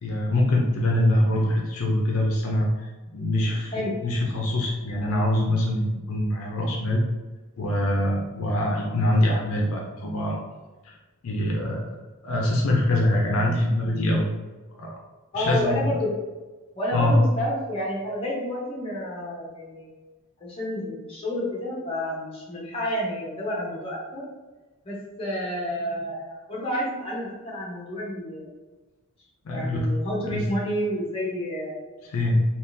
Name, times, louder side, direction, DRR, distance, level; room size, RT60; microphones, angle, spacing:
voice 1, 0.0-3.7 4.0-7.0 7.6-10.4 10.8-10.9 11.2-12.0 12.2-14.3 14.7-15.0 15.4-15.9 16.9-17.2 29.4-29.9 30.3-30.5 32.1-32.4, left 1 dB, 70° left, -1 dB, 0.5 m, -24 dB
voice 2, 15.3-16.1 16.7-19.9 20.4-24.2 24.8-28.5 29.5-31.8, equal, 25° left, -5 dB, 0.8 m, -30 dB
3.6 x 2.4 x 2.5 m, 1.2 s
head